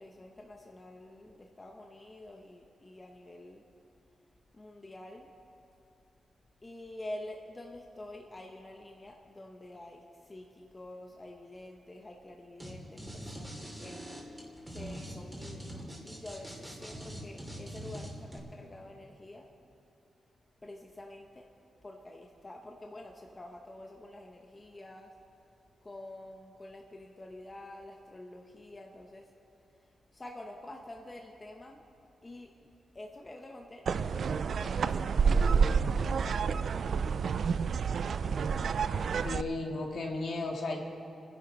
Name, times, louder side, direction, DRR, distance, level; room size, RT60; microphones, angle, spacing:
voice 1, 0.0-3.6 4.5-5.4 6.6-14.0 14.7-19.5 20.6-21.5 21.8-25.2 25.8-29.3 29.7-31.9 32.2-37.0, left 1 dB, 20° left, 1 dB, 0.8 m, -48 dB
sound 1, 12.6-12.7 13.0-18.4, equal, 10° right, 2.6 m, -43 dB
sound 2, 33.9-39.4, right 5 dB, 55° right, 0.3 m, -29 dB
voice 2, 39.2-40.8, left 2 dB, 60° left, 0 dB, 2.0 m, -34 dB
30.0 x 10.5 x 4.0 m, 2.8 s
wide cardioid pair, 175°, 0 cm